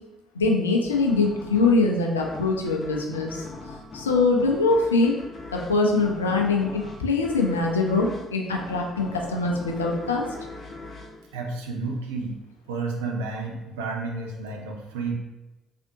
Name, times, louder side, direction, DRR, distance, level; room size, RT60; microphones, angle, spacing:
voice 1, 0.4-3.4 3.9-5.1 5.5-10.2, left 3 dB, 85° left, 0 dB, 0.4 m, -23 dB
sound 1, 0.9-12.2, left 3 dB, 40° left, 0.6 m, -41 dB
voice 2, 11.3-12.4 12.7-15.2, right 3 dB, 75° right, 2 dB, 0.4 m, -31 dB
3.5 x 2.5 x 2.7 m, 1.0 s
figure-of-eight pair, 45°, 0 cm